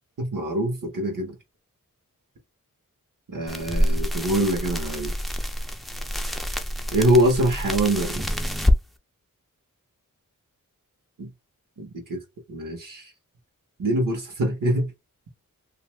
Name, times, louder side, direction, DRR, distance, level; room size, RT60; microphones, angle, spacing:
voice 1, 0.2-1.4 3.3-5.1 6.9-8.2 11.2-11.3 11.8-12.2 12.5-13.1 13.8-14.9, right 1 dB, 70° right, 1.2 m, -24 dB
sound 1, 3.5-8.8, equal, ahead, 0.4 m, -26 dB
2.6 x 2.3 x 3.2 m
wide cardioid pair, 85°, 33 cm